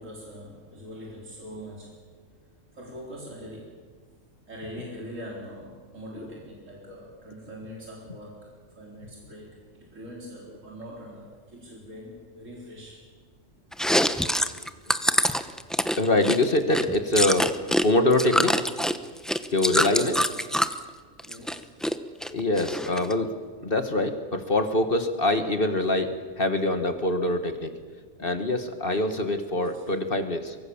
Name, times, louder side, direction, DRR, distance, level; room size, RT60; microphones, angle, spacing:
voice 1, 0.0-2.0 2.7-3.8 4.5-13.1 20.9-21.7 29.7-29.8, equal, 80° right, -3 dB, 4.5 m, -43 dB
Chewing mastication, 13.7-17.9 18.1-20.8 21.2-21.9 22.2-23.1, equal, ahead, 0.7 m, -25 dB
voice 2, 16.0-17.5 17.8-18.7 19.5-20.4 22.3-23.3 23.6-27.7 28.2-30.6, left 2 dB, 45° left, 7 dB, 1.7 m, -24 dB
24.0 x 23.5 x 7.2 m, 1.5 s
omnidirectional pair, 1.3 m